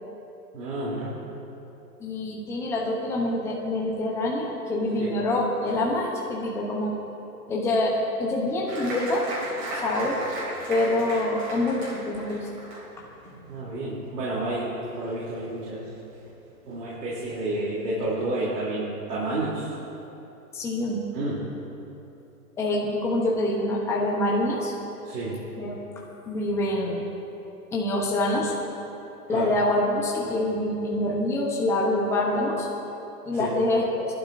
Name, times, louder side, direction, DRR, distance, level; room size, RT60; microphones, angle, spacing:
voice 1, 0.5-1.1 5.0-5.1 13.5-15.9 16.7-19.7 21.1-21.5 25.0-25.4 29.3-29.5 33.3-33.5, right 2 dB, 70° right, -8 dB, 3.4 m, -30 dB
voice 2, 2.0-7.0 7.5-9.3 9.7-10.2 10.7-12.5 20.5-21.0 22.6-24.7 25.6-25.7 26.3-27.1 27.7-28.5 29.3-32.7 33.3-33.8, left 1 dB, 5° left, -3 dB, 0.8 m, -26 dB
Applause, 8.7-15.7 16.0-16.7 17.1-17.2 17.5-18.0, right 1 dB, 30° right, 2.8 m, -37 dB
21.5 x 12.0 x 2.7 m, 2.9 s
hypercardioid pair, 155°, 49 cm